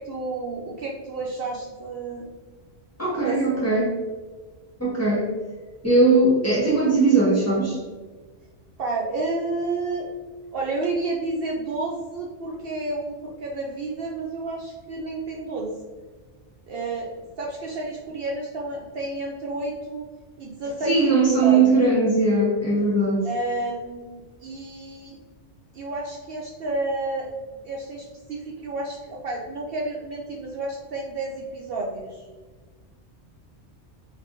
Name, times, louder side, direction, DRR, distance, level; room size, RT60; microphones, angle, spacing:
voice 1, 0.0-2.3 3.2-3.7 8.8-10.1 10.5-15.7 16.7-17.1 17.4-20.1 20.4-21.8 23.2-25.2 25.7-32.3, right 2 dB, 65° right, -1 dB, 0.7 m, -30 dB
voice 2, 3.0-3.9 4.8-5.3 5.8-7.8 20.8-23.3, right 3 dB, 15° left, -6 dB, 1.2 m, -19 dB
4.1 x 3.5 x 2.6 m, 1.4 s
omnidirectional pair, 1.2 m